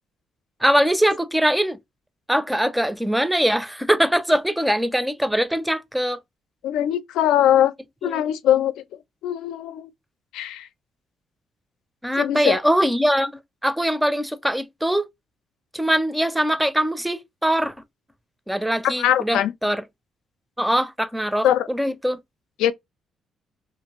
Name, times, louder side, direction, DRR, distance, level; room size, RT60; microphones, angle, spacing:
voice 1, 0.6-1.8 2.3-6.2 12.0-15.0 15.7-17.7 18.5-19.8 20.6-22.2, equal, 5° right, 0.5 m, -22 dB
voice 2, 6.6-7.7 8.0-8.8 9.2-9.9 10.3-10.7 12.2-12.6 18.8-19.5 21.4-21.7 22.6-22.7, left 11 dB, 90° left, 0.3 m, -21 dB
2.5 x 2.5 x 2.9 m
cardioid pair, 90°, 0 cm